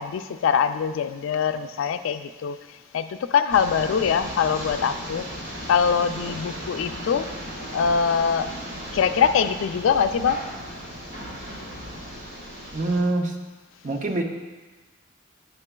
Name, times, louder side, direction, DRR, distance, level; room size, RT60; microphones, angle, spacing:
voice 1, 0.0-2.6 2.9-5.3 5.7-7.3 7.7-8.5 8.9-10.4, left 7 dB, 90° left, 11 dB, 0.3 m, -23 dB
sound 1, 3.5-13.0, equal, 65° right, 2.1 m, -36 dB
voice 2, 12.7-13.4 13.8-14.2, right 2 dB, 40° right, 2 dB, 0.6 m, -25 dB
9.6 x 5.5 x 2.2 m, 1.3 s
head